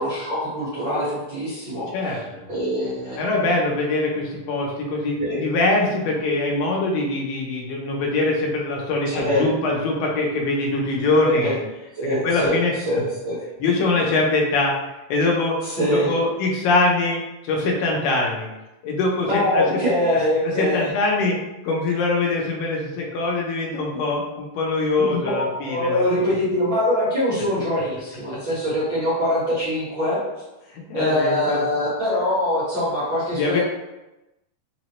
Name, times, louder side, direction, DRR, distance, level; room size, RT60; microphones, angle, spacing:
voice 1, 0.0-1.9 2.5-3.2 5.2-5.4 9.1-9.5 11.2-11.5 12.0-13.4 15.6-16.1 19.3-20.9 25.0-30.2 30.9-33.6, left 1 dB, 55° right, -12 dB, 1.3 m, -23 dB
voice 2, 1.9-2.4 3.2-11.5 12.0-12.7 13.6-14.8 15.1-18.5 18.8-19.8 20.1-21.4 21.6-26.3 30.9-31.7 33.3-33.6, left 2 dB, 90° left, -1 dB, 2.5 m, -23 dB
5.5 x 2.1 x 3.0 m, 0.99 s
omnidirectional pair, 3.9 m